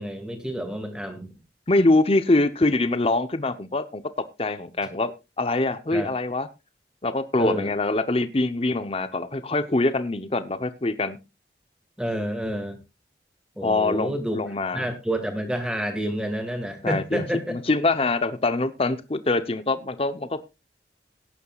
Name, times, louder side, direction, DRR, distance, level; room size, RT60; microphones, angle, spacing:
voice 1, 0.0-1.3 5.9-6.1 7.4-7.7 12.0-12.8 13.6-14.4 14.7-17.6, equal, 5° right, 6 dB, 2.3 m, -29 dB
voice 2, 1.7-4.0 4.4-6.5 7.0-11.2 13.6-14.9 16.8-17.2 17.5-20.5, left 2 dB, 30° left, 12 dB, 0.8 m, -24 dB
18.0 x 10.0 x 2.4 m, 0.25 s
head